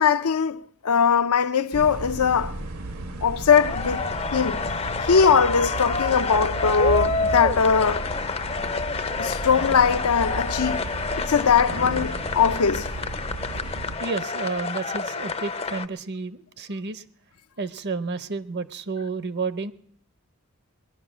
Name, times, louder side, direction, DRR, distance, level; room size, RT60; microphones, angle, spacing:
voice 1, 0.0-2.6 3.2-4.6 5.0-8.1 9.2-10.8 11.2-12.9, left 6 dB, 80° left, 0.6 m, -21 dB
sound 1, 1.7-14.0, right 2 dB, 80° right, 1.6 m, -34 dB
sound 2, 3.5-15.8, left 4 dB, 25° left, 0.5 m, -29 dB
voice 2, 13.8-17.0 17.6-19.7, right 4 dB, 50° right, 0.8 m, -31 dB
21.0 x 11.0 x 6.1 m
head